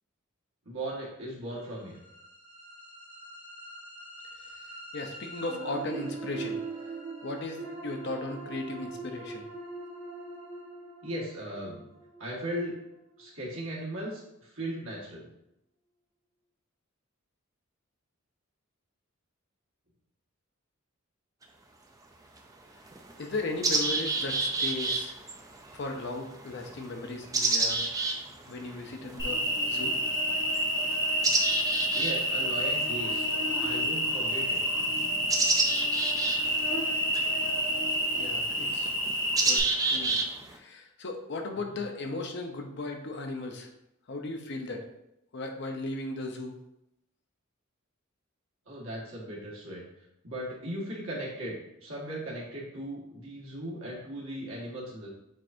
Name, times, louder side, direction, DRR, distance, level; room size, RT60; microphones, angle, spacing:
voice 1, 0.6-2.0 11.0-11.9 12.2-12.8 13.2-15.3 31.9-33.3 33.6-34.6 48.7-49.8 50.2-55.1, right 1 dB, 70° right, -4 dB, 1.5 m, -37 dB
sound 1, 1.6-13.7, right 3 dB, 45° right, 1.1 m, -42 dB
voice 2, 4.9-6.6 7.2-9.4 23.2-25.2 25.7-27.8 28.5-30.0 38.1-38.9 39.4-40.1 40.5-43.7 44.1-44.8 45.3-46.5, left 2 dB, 55° left, 3 dB, 0.6 m, -36 dB
sound 2, 21.4-21.5 22.4-22.5 22.9-40.6, right 3 dB, 15° right, 0.4 m, -31 dB
Cricket, 29.2-39.6, equal, 20° left, 0.7 m, -29 dB
7.5 x 2.6 x 2.6 m, 0.84 s
head